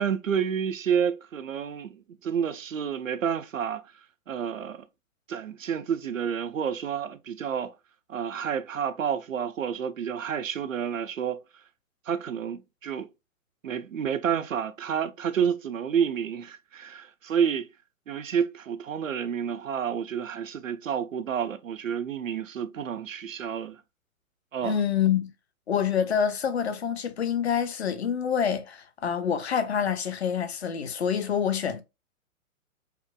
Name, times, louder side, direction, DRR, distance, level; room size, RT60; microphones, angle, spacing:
voice 1, 0.0-3.8 4.3-4.8 5.3-7.7 8.1-11.4 12.1-13.1 13.6-17.7 18.1-23.8 24.5-24.8, right 8 dB, 65° right, 0.6 m, -29 dB
voice 2, 24.6-25.3 25.7-31.8, left 8 dB, 50° left, 0.6 m, -26 dB
4.4 x 2.0 x 2.3 m
figure-of-eight pair, 120°, 43 cm